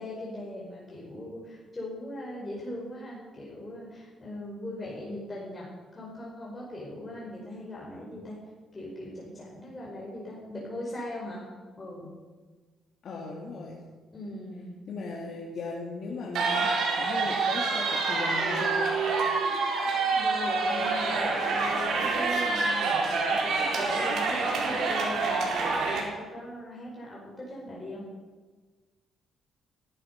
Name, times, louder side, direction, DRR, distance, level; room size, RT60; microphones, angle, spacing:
voice 1, 0.0-5.7 5.9-8.4 8.7-11.4 11.8-12.2 14.1-14.8 20.1-23.5 23.7-28.0, left 1 dB, 25° left, -5 dB, 5.2 m, -39 dB
voice 2, 13.0-13.8 14.9-18.9, left 3 dB, 60° left, -3 dB, 2.7 m, -37 dB
sound 1, 16.3-26.0, right 4 dB, 75° right, 4.5 m, -27 dB
18.5 x 13.0 x 5.5 m, 1.4 s
cardioid pair, 90°, 0 cm